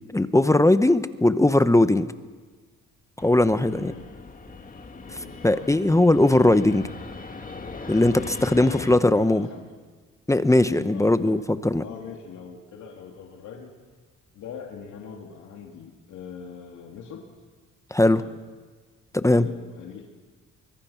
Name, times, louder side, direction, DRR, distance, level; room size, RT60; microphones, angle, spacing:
voice 1, 0.1-2.1 3.2-3.9 5.4-6.9 7.9-9.5 10.3-11.8 17.9-18.2 19.1-19.5, left 1 dB, 10° left, 12 dB, 0.9 m, -19 dB
Fixed-wing aircraft airplane, 3.2-9.0, left 4 dB, 30° left, 2.0 m, -40 dB
voice 2, 3.6-4.1 5.0-5.7 8.2-9.7 10.7-11.4 11.8-13.7 14.3-17.2 18.1-18.3 19.3-20.0, left 6 dB, 80° left, 0 dB, 2.8 m, -42 dB
24.0 x 22.5 x 5.8 m, 1.4 s
cardioid pair, 90°, 30 cm